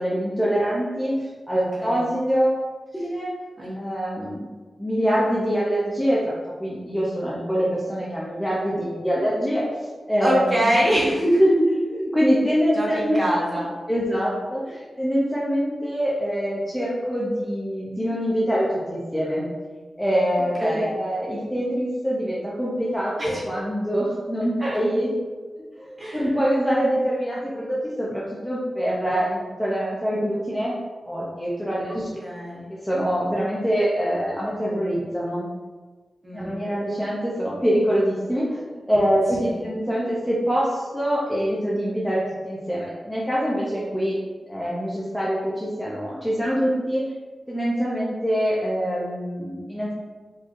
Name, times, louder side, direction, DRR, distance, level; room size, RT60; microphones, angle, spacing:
voice 1, 0.0-2.7 3.0-3.3 3.8-4.4 4.8-6.3 6.6-9.7 10.1-10.6 11.2-13.2 13.9-19.4 20.0-25.1 25.8-29.3 29.6-30.8 31.1-32.1 32.7-35.5 36.3-38.6 38.9-44.2 44.5-47.0 47.5-49.9, equal, 5° left, -7 dB, 0.4 m, -24 dB
voice 2, 10.2-11.2 12.7-13.7 20.6-21.0 23.2-23.4 24.6-24.8 26.0-26.3 29.1-29.4 32.2-32.6 36.2-36.5 39.4-39.7, equal, 20° right, -5 dB, 0.9 m, -25 dB
4.3 x 3.1 x 2.4 m, 1.4 s
wide cardioid pair, 180°, 0 cm